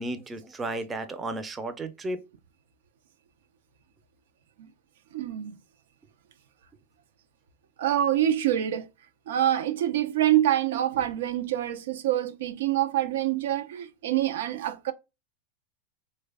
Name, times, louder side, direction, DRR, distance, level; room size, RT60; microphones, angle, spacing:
voice 1, 0.0-2.2, right 2 dB, 15° right, 0.4 m, -33 dB
voice 2, 5.1-5.5 7.8-8.9 9.3-14.9, right 12 dB, 80° right, 0.4 m, -26 dB
3.1 x 2.2 x 3.3 m
supercardioid pair, 125°, 0 cm